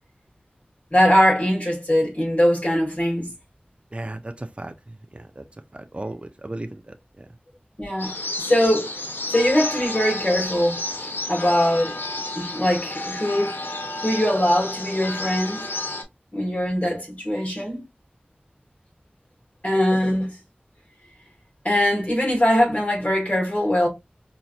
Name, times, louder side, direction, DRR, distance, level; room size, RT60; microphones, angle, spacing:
voice 1, 0.9-3.3 7.8-8.9 9.3-10.8 11.3-12.0 12.4-13.5 14.0-15.6 16.3-17.8 19.6-20.3 21.6-23.9, equal, 40° left, 2.3 m, -21 dB
voice 2, 3.9-4.7 5.1-5.4 5.7-7.3, right 2 dB, 35° right, 0.5 m, -35 dB
sound 1, 8.0-16.0, left 2 dB, 90° left, 0.9 m, -31 dB
4.3 x 2.8 x 2.4 m
wide cardioid pair, 45°, 3 cm